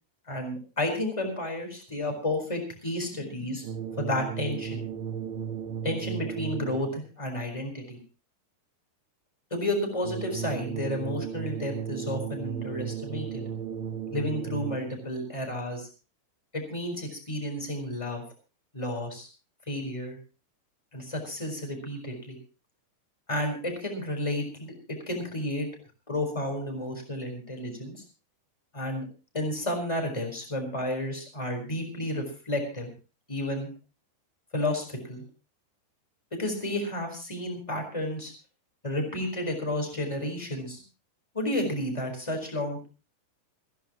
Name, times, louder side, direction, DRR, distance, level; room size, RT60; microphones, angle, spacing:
voice 1, 0.3-3.6 4.0-4.8 5.8-8.0 9.5-13.4 14.1-15.9 16.5-18.2 18.7-19.3 19.7-20.2 20.9-22.4 23.3-24.7 25.1-25.7 26.1-28.0 28.7-29.1 29.3-32.9 33.3-33.7 34.5-35.2 36.3-38.3 38.8-40.8 41.3-42.9, left 1 dB, 5° left, 3 dB, 4.0 m, -31 dB
sound 1, 3.6-7.1 10.0-15.1, right 8 dB, 90° right, 3.7 m, -35 dB
28.0 x 11.0 x 3.0 m, 0.34 s
omnidirectional pair, 5.0 m